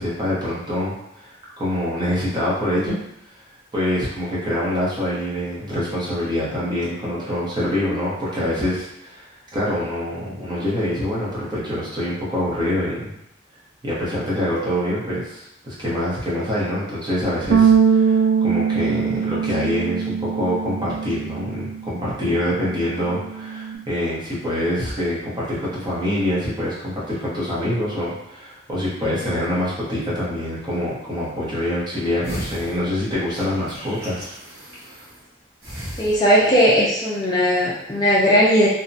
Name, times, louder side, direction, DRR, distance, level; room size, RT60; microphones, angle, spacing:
voice 1, 0.0-3.0 3.7-9.3 9.5-13.1 13.8-34.3, left 1 dB, 25° right, -7 dB, 0.8 m, -25 dB
Bass guitar, 17.5-23.8, right 7 dB, 75° right, 0.3 m, -22 dB
sound 1, 32.2-35.3 35.6-36.7 37.0-37.1, equal, 55° right, 1.1 m, -36 dB
voice 2, 36.0-38.7, equal, 20° left, -6 dB, 0.4 m, -17 dB
2.7 x 2.1 x 2.6 m, 0.80 s
head